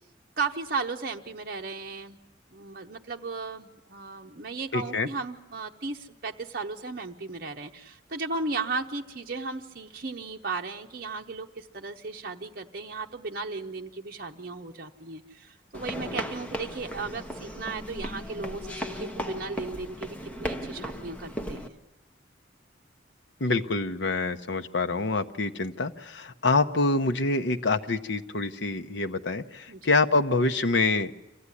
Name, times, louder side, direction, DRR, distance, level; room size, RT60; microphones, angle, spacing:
voice 1, 0.4-2.2 2.5-21.8 29.7-29.9, right 4 dB, 50° right, 2 dB, 0.9 m, -35 dB
voice 2, 4.7-5.1 23.4-31.1, left 3 dB, 70° left, 7 dB, 0.9 m, -26 dB
sound 1, 15.7-21.7, equal, 5° left, 1.1 m, -36 dB
25.5 x 15.5 x 9.8 m, 1.0 s
head